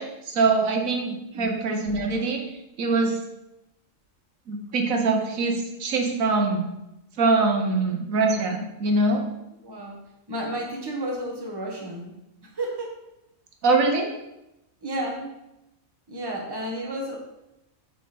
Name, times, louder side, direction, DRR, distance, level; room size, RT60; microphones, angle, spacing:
voice 1, 0.0-2.4 2.8-3.2 4.5-6.7 7.2-9.2 13.6-14.1, right 3 dB, 80° right, 3 dB, 1.4 m, -23 dB
voice 2, 9.6-10.0 10.3-12.1 12.4-13.0 14.8-15.3 16.1-17.2, right 1 dB, 20° right, -1 dB, 1.3 m, -32 dB
8.3 x 3.7 x 5.9 m, 0.91 s
omnidirectional pair, 1.4 m